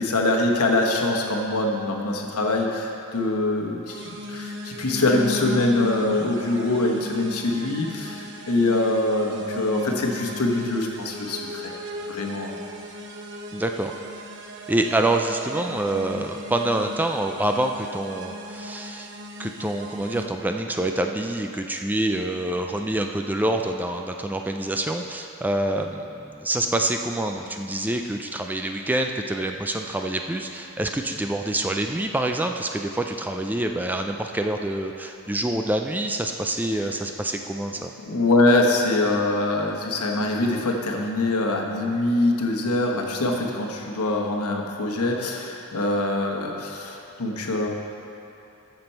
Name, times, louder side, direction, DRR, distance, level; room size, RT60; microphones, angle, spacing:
voice 1, 0.0-11.7 12.1-12.5 38.0-47.7, left 2 dB, 80° left, 1 dB, 1.2 m, -24 dB
sound 1, 3.9-20.3, left 1 dB, 55° right, 0.9 m, -36 dB
voice 2, 13.5-13.9 14.7-19.1 19.4-37.9, right 1 dB, 10° right, 4 dB, 0.3 m, -26 dB
14.0 x 6.1 x 4.5 m, 2.8 s
head